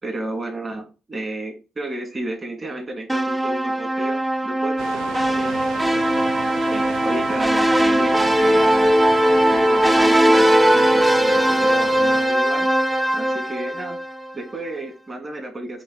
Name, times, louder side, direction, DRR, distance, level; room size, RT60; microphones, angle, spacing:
voice 1, 0.0-6.1 6.7-8.9 9.5-12.7 13.1-14.0 14.3-15.8, right 2 dB, 30° right, 2 dB, 2.8 m, -32 dB
sound 1, 3.1-14.3, right 1 dB, 10° right, 0.5 m, -19 dB
sound 2, 4.8-12.3, right 7 dB, 85° right, 0.7 m, -35 dB
7.6 x 2.9 x 4.3 m, 0.31 s
cardioid pair, 90°, 0 cm